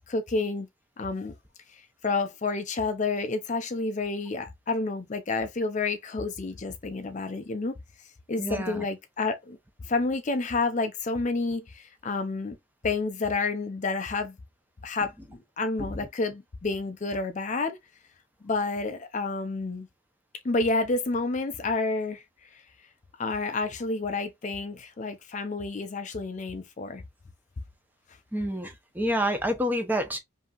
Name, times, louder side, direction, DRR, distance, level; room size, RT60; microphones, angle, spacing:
voice 1, 0.1-0.7 1.0-1.3 1.7-9.6 9.8-12.6 12.8-14.4 14.8-17.8 18.4-19.9 20.4-22.6 23.2-27.0, left 3 dB, 35° left, 0.4 m, -30 dB
voice 2, 8.4-8.9 28.3-30.2, equal, 10° right, 0.6 m, -28 dB
5.3 x 2.7 x 2.3 m
head